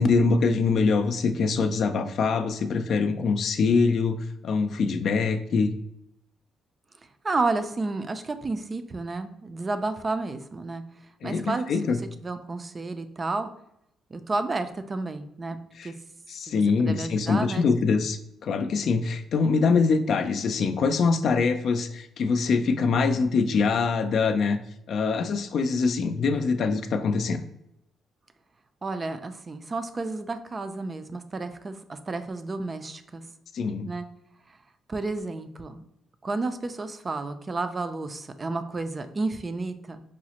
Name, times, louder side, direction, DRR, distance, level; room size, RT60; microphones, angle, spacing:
voice 1, 0.0-5.7 11.2-12.0 15.8-15.9 16.3-24.6 24.9-27.4 33.5-33.9, left 4 dB, 65° left, 8 dB, 0.3 m, -24 dB
voice 2, 7.2-10.8 11.2-12.0 12.2-13.5 14.1-15.6 15.8-15.9 16.5-17.7 28.8-33.2 33.9-34.1 34.9-35.8 36.2-40.0, right 3 dB, 30° right, 9 dB, 0.3 m, -31 dB
4.8 x 2.0 x 2.8 m, 0.78 s
cardioid pair, 90°, 0 cm